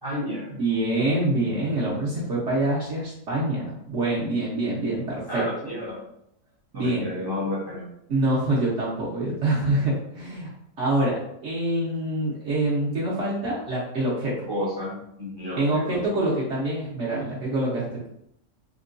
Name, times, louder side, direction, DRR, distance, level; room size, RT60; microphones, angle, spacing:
voice 1, 0.0-0.5 5.3-6.0 6.7-7.9 14.5-16.0, left 1 dB, 25° right, -6 dB, 0.6 m, -31 dB
voice 2, 0.5-5.5 6.7-7.0 8.1-10.5 10.8-11.2 11.4-14.3 15.6-18.1, right 1 dB, 60° right, -6 dB, 1.0 m, -25 dB
3.6 x 2.2 x 2.5 m, 0.76 s
omnidirectional pair, 1.6 m